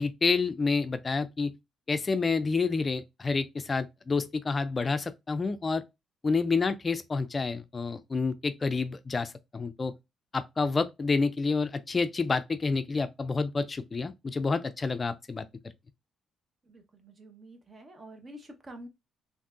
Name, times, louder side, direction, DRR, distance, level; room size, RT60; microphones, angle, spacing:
voice 1, 0.0-1.5 1.9-5.8 6.2-9.9 10.3-15.4, left 4 dB, 35° left, 0.3 m, -29 dB
voice 2, 16.6-18.9, right 1 dB, 35° right, 1.0 m, -48 dB
3.4 x 2.6 x 2.4 m
hypercardioid pair, 50°, 0 cm